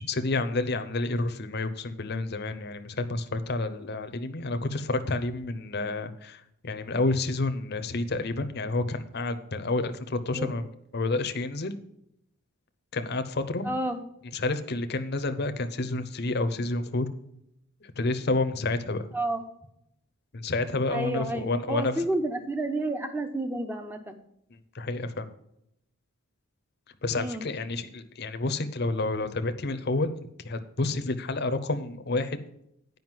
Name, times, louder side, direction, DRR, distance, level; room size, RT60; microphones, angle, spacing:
voice 1, 0.0-10.6 10.9-11.7 12.9-13.7 14.3-17.1 18.0-19.0 20.3-21.9 24.7-25.3 27.0-30.1 30.4-32.4, left 2 dB, 50° left, 10 dB, 0.7 m, -29 dB
voice 2, 13.6-14.0 19.1-19.4 20.9-24.2 27.1-27.4, right 1 dB, 10° right, 6 dB, 0.8 m, -30 dB
9.4 x 5.3 x 7.5 m, 0.77 s
head